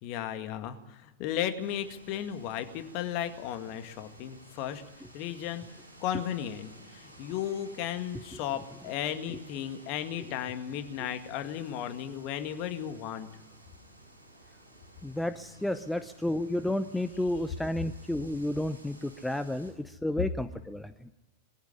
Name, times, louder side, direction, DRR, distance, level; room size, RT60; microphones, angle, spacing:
voice 1, 0.0-4.8 5.1-5.7 6.0-13.3 15.7-15.8, left 10 dB, 45° left, 8 dB, 2.0 m, -35 dB
sound 1, 1.6-19.7, right 1 dB, 85° right, 6.0 m, -54 dB
voice 2, 15.0-19.7 20.0-20.9, left 1 dB, 5° left, 12 dB, 0.7 m, -31 dB
21.5 x 14.5 x 9.9 m, 1.1 s
figure-of-eight pair, 90°, 0 cm